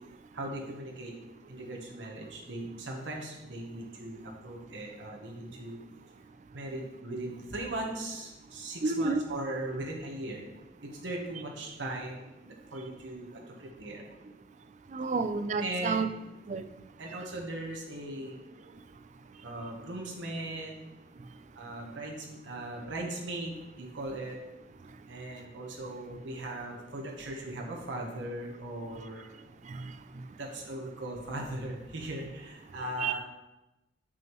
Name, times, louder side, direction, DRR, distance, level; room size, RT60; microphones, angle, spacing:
voice 1, 0.3-1.1 1.5-5.8 6.5-10.5 10.8-14.0 15.6-16.0 17.0-18.4 19.4-20.9 21.5-24.4 25.1-29.2 30.4-33.2, right 1 dB, 85° right, -1 dB, 1.1 m, -39 dB
voice 2, 8.8-9.2 14.9-16.1 16.5-16.7 29.7-29.9 33.0-33.1, right 4 dB, 40° right, 10 dB, 0.4 m, -30 dB
7.1 x 6.1 x 3.1 m, 1.0 s
head